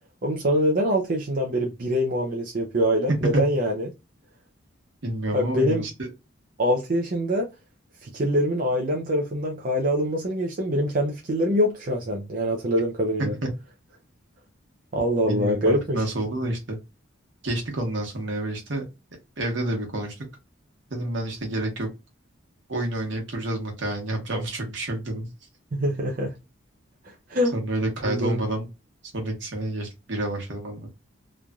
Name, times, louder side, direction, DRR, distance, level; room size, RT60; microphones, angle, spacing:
voice 1, 0.2-3.9 5.3-5.8 6.6-7.5 8.0-13.3 14.9-16.0 25.7-26.3 27.0-27.5 28.0-28.4, equal, 40° right, 0.5 m, -24 dB
voice 2, 3.1-3.4 5.0-5.9 13.2-13.5 15.2-16.8 17.4-18.8 19.4-20.3 20.9-21.9 22.7-25.3 27.5-28.6 29.1-30.9, right 1 dB, 65° right, 1.1 m, -28 dB
3.1 x 2.5 x 2.2 m
head